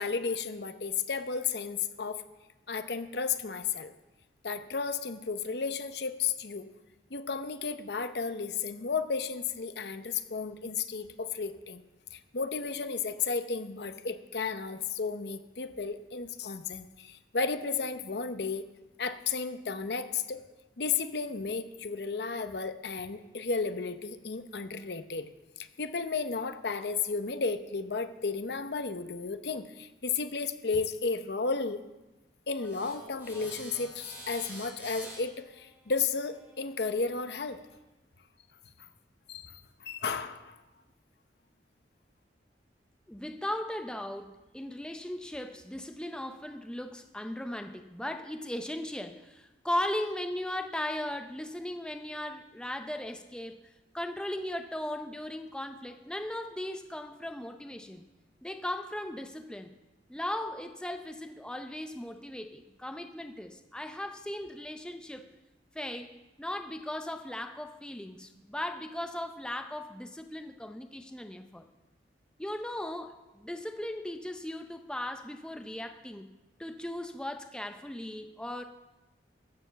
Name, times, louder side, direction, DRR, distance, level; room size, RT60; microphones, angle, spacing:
voice 1, 0.0-2.2 2.7-3.9 4.4-6.7 7.1-11.8 12.1-18.6 19.0-20.4 20.8-25.3 25.6-31.8 32.5-37.6 39.3-40.6, left 5 dB, 65° left, 10 dB, 0.8 m, -33 dB
sound 1, 32.5-37.7, right 1 dB, 10° right, 3.5 m, -49 dB
voice 2, 43.1-58.0 58.4-59.7 60.1-65.2 65.7-66.1 66.4-71.7 72.4-76.3 76.6-78.6, left 1 dB, 5° left, 6 dB, 0.6 m, -37 dB
14.5 x 6.9 x 6.9 m, 1.1 s
head